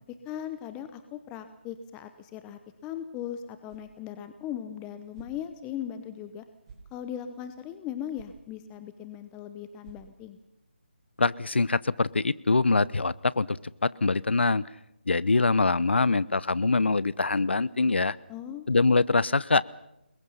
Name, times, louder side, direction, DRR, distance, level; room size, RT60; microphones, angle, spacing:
voice 1, 0.1-6.4 6.9-10.4 18.3-18.7, left 10 dB, 15° left, 10 dB, 0.9 m, -38 dB
sound 1, 3.7-4.0 4.4-4.5 5.1-5.4 5.9-6.0 6.6-6.9 7.5-7.6 8.1-8.4 8.8-8.9 9.2-9.3 9.8-10.4, right 5 dB, 30° right, 5.3 m, -51 dB
voice 2, 11.2-14.6 15.1-18.2 18.7-19.6, left 3 dB, 75° left, 20 dB, 0.9 m, -24 dB
29.5 x 21.5 x 5.7 m, 0.84 s
figure-of-eight pair, 160°, 6 cm